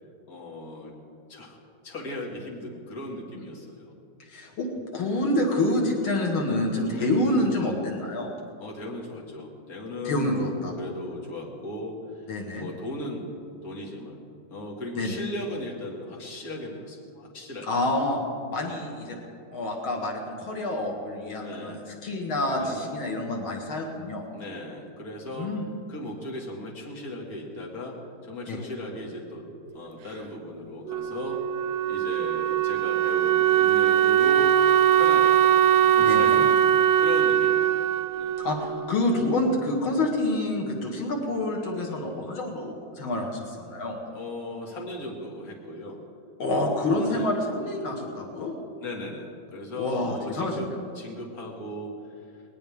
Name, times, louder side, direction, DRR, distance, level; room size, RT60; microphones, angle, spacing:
voice 1, 0.3-0.9 1.3-1.6 1.8-3.9 6.9-7.2 8.6-12.3 12.6-13.3 13.6-14.2 14.5-17.7 18.6-18.9 21.4-21.8 22.5-22.9 24.3-25.5 25.9-28.0 28.2-29.4 29.7-31.5 31.9-35.4 35.8-36.7 37.0-37.9 38.2-38.3 44.1-46.0 46.6-47.3 48.8-50.7 50.9-51.9, left 1 dB, 45° left, -2 dB, 2.7 m, -37 dB
voice 2, 4.3-8.3 10.0-10.7 12.3-12.7 15.0-15.1 17.6-18.2 18.5-19.2 19.5-24.2 25.3-25.6 28.5-28.6 36.0-36.4 38.4-44.0 46.4-48.5 49.8-50.8, left 1 dB, 90° left, 0 dB, 2.6 m, -27 dB
Wind instrument woodwind instrument, 30.9-39.5, right 10 dB, 90° right, 1.4 m, -21 dB
20.0 x 19.0 x 3.6 m, 2.4 s
omnidirectional pair, 2.2 m